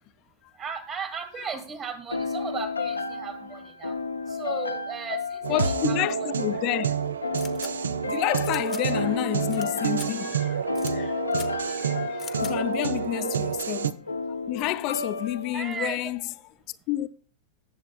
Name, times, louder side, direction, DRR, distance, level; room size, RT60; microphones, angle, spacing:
voice 1, 0.6-4.0 4.3-6.3 13.1-13.3 15.5-16.1, right 6 dB, 30° right, 1.9 m, -36 dB
sound 1, 2.1-15.8, left 4 dB, 80° left, 0.7 m, -33 dB
sound 2, 5.4-13.9, right 8 dB, 70° right, 0.5 m, -29 dB
voice 2, 5.5-6.9 7.9-14.0 14.5-16.2 16.9-17.1, left 17 dB, 40° left, 0.5 m, -30 dB
sound 3, 7.4-7.7 8.4-8.8 9.5-9.7 9.9-10.1 10.7-10.9 11.3-11.5 12.2-12.5, left 8 dB, 25° left, 0.9 m, -41 dB
19.5 x 7.6 x 2.2 m
figure-of-eight pair, 90°, 0 cm